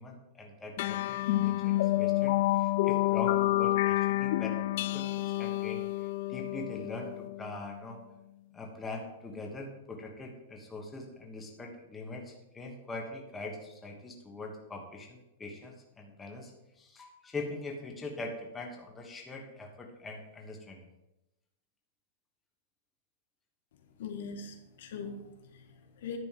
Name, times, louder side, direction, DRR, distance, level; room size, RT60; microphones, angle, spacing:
voice 1, 0.0-4.6 4.9-8.0 8.5-16.5 16.8-20.9, left 2 dB, 10° left, 0 dB, 1.4 m, -42 dB
sound 1, 0.8-7.6, left 16 dB, 50° left, 0.3 m, -29 dB
voice 2, 24.0-26.2, left 5 dB, 70° left, 4 dB, 1.6 m, -42 dB
11.0 x 4.1 x 7.6 m, 0.91 s
supercardioid pair, 160°, 0 cm